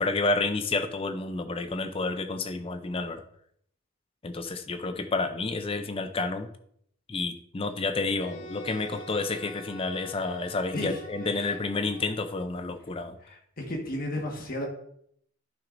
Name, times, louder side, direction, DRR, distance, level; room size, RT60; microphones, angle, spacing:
voice 1, 0.0-3.2 4.2-6.5 7.1-13.2, left 3 dB, 25° left, 9 dB, 0.5 m, -30 dB
Wind instrument woodwind instrument, 8.2-12.5, equal, 65° left, 0.9 m, -46 dB
voice 2, 13.2-14.7, left 1 dB, 40° left, 0 dB, 1.5 m, -33 dB
10.5 x 6.0 x 2.6 m, 0.68 s
head